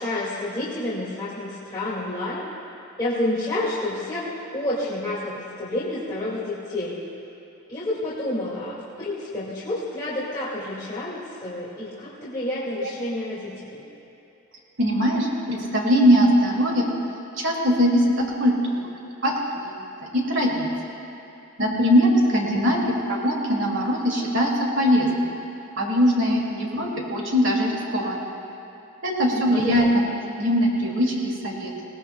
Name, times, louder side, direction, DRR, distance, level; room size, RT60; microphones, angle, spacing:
voice 1, 0.0-2.5 3.0-7.0 7.7-13.8 22.4-22.8 29.3-30.0, left 1 dB, 20° left, -10 dB, 2.1 m, -29 dB
voice 2, 14.8-16.9 17.4-18.8 19.2-19.3 19.6-19.9 20.1-20.7 21.6-25.3 25.8-28.4 29.0-30.0 30.4-31.7, equal, 65° right, -2 dB, 2.5 m, -21 dB
21.0 x 17.5 x 2.3 m, 2.9 s
head